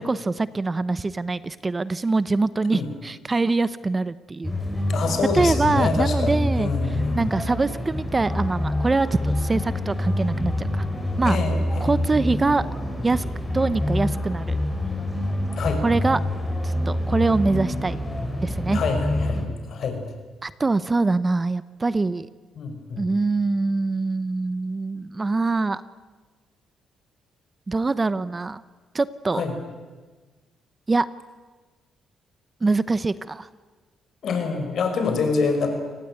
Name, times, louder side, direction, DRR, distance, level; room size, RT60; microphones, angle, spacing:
voice 1, 0.0-4.6 5.3-10.9 11.2-11.4 11.8-12.7 13.0-13.2 13.5-14.6 15.8-16.2 16.6-18.0 18.4-18.8 20.4-22.3 23.0-25.8 27.7-28.6 28.9-29.5 30.9-31.1 32.6-33.5, right 3 dB, 25° right, 16 dB, 0.9 m, -24 dB
sound 1, 4.4-19.4, left 1 dB, 10° left, 5.7 m, -26 dB
voice 2, 4.9-7.3 11.2-11.9 15.6-15.8 18.7-20.0 22.6-23.0 29.3-29.5 34.2-35.7, left 4 dB, 60° left, 6 dB, 6.0 m, -26 dB
29.0 x 18.5 x 9.4 m, 1.3 s
cardioid pair, 90°, 0 cm